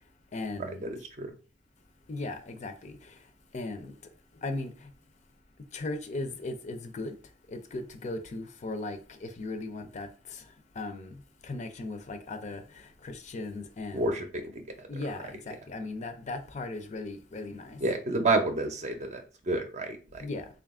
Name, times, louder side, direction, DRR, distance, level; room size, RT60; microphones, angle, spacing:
voice 1, 0.3-0.8 2.1-3.0 3.5-3.9 4.4-4.7 5.7-7.1 7.5-10.4 10.8-11.2 11.4-14.2 14.9-17.8 20.2-20.5, left 2 dB, 40° left, 0.5 m, -37 dB
voice 2, 0.8-1.3 13.9-14.6 17.8-20.2, right 2 dB, 40° right, 0.6 m, -29 dB
3.8 x 2.4 x 3.5 m
head